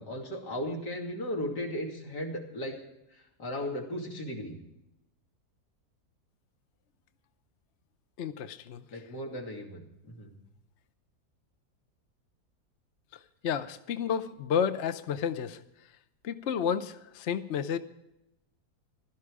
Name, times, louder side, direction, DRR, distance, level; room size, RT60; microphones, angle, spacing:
voice 1, 0.0-2.8 3.1-4.6 8.9-10.3, equal, 80° left, 0 dB, 3.3 m, -36 dB
voice 2, 8.2-9.0 13.4-15.6 16.2-17.8, left 7 dB, 55° left, 11 dB, 0.9 m, -31 dB
16.5 x 13.0 x 4.9 m, 0.87 s
omnidirectional pair, 1.8 m